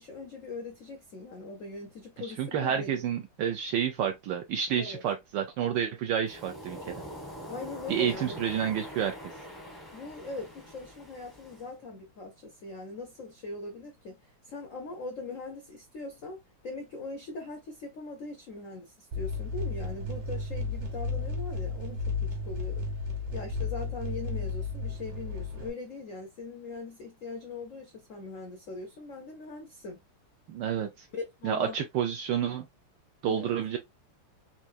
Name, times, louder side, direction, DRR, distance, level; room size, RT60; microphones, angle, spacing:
voice 1, 0.0-3.0 4.8-5.0 7.5-8.4 9.9-22.9 23.3-30.0 31.1-31.8 33.3-33.5, left 3 dB, 80° left, 0.7 m, -41 dB
voice 2, 2.2-7.0 7.9-9.3 30.5-31.1 31.4-32.7 33.2-33.8, right 8 dB, 75° right, 1.0 m, -30 dB
Waves surf, 6.3-11.7, equal, ahead, 0.4 m, -44 dB
sound 1, 19.1-25.7, left 3 dB, 55° right, 1.6 m, -33 dB
4.5 x 2.6 x 2.4 m
omnidirectional pair, 2.4 m